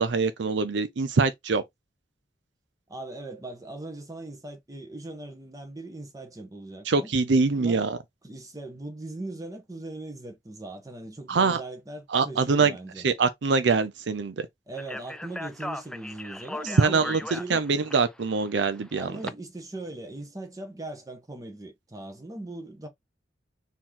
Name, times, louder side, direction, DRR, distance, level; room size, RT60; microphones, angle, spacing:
voice 1, 0.0-1.6 6.9-8.0 11.3-11.6 12.1-12.7 13.0-14.5 16.8-19.1, right 4 dB, 70° right, 0.5 m, -24 dB
voice 2, 2.9-7.1 7.5-7.8 8.2-13.1 14.7-17.6 19.0-22.9, right 2 dB, 20° right, 1.3 m, -39 dB
Speech, 14.7-19.3, left 1 dB, 5° left, 0.4 m, -38 dB
4.4 x 3.0 x 3.7 m
head